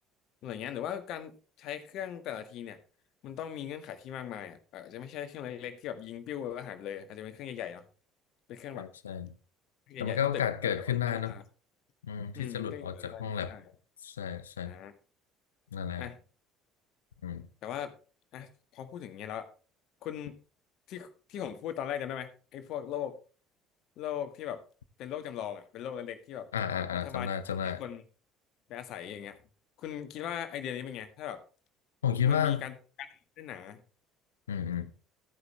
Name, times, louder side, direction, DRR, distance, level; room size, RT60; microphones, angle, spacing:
voice 1, 0.4-2.8 3.2-7.9 8.5-8.8 9.9-10.4 10.7-11.4 12.4-13.6 14.6-14.9 16.0-16.2 17.6-17.9 18.3-19.5 20.0-20.4 20.9-23.2 24.0-24.6 25.0-26.5 26.9-27.3 27.6-28.0 28.7-29.4 29.8-31.4 32.2-33.8, left 10 dB, 55° left, 1.8 m, -39 dB
voice 2, 8.7-9.3 10.0-11.4 12.1-13.6 14.0-14.7 15.7-16.1 17.2-17.5 26.5-27.8 32.0-32.7 34.5-34.9, left 8 dB, 80° left, 0.8 m, -32 dB
14.5 x 9.6 x 3.3 m
figure-of-eight pair, 55°, 0 cm